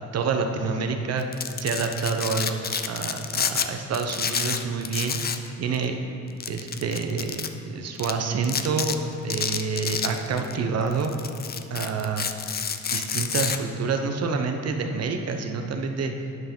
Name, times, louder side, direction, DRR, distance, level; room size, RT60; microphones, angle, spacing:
voice 1, 0.1-1.3 1.6-5.2 5.6-6.0 6.5-7.4 7.7-9.0 9.2-11.1 11.7-12.3 12.9-16.1, right 5 dB, 55° right, 5 dB, 1.0 m, -27 dB
Domestic sounds home sounds, 1.2-3.7 3.9-5.5 5.7-5.9 6.4-7.5 8.0-8.1 8.4-9.0 9.3-10.5 10.9-13.6, left 6 dB, 30° left, 0.5 m, -29 dB
9.5 x 5.8 x 5.6 m, 2.7 s
cardioid pair, 90°, 30 cm